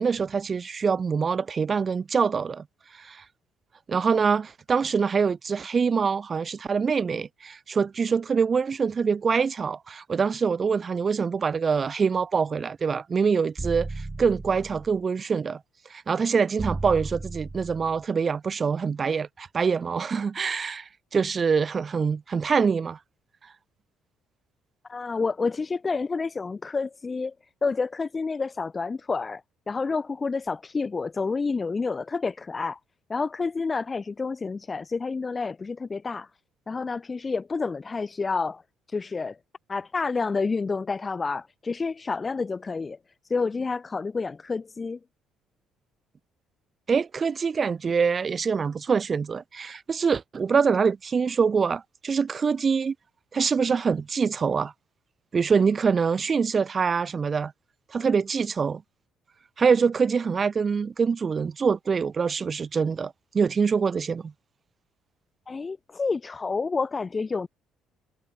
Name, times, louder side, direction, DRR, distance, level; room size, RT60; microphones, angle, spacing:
voice 1, 0.0-2.6 2.9-3.2 3.9-15.6 15.9-23.0 46.9-52.9 53.3-54.7 55.3-57.5 57.9-58.8 59.6-64.3, right 5 dB, 40° right, 1.7 m, -25 dB
sound 1, 13.6-15.0 16.6-18.0, right 3 dB, 20° right, 1.5 m, -35 dB
voice 2, 24.9-27.3 27.6-29.4 29.7-32.8 33.1-36.3 36.7-38.6 38.9-39.4 39.7-43.0 43.3-45.0 65.5-67.5, left 4 dB, 30° left, 0.7 m, -29 dB
hypercardioid pair, 55°, 0 cm